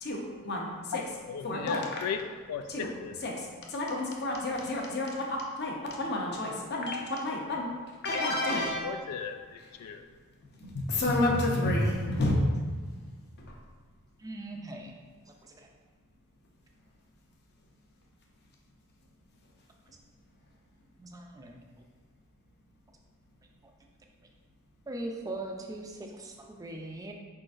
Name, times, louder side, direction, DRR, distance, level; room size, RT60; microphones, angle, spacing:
voice 1, 0.0-1.0 1.4-1.9 2.7-2.9 3.2-3.3 3.7-5.2 5.6-7.7 8.0-8.9 10.6-12.4, left 1 dB, 50° left, -1 dB, 0.7 m, -30 dB
voice 2, 0.9-3.2 8.8-10.0, left 6 dB, 90° left, 8 dB, 0.3 m, -36 dB
voice 3, 14.2-14.9 15.4-15.7 21.0-21.6 24.9-27.1, right 2 dB, 15° right, 2 dB, 0.4 m, -40 dB
5.0 x 3.8 x 2.5 m, 1.5 s
head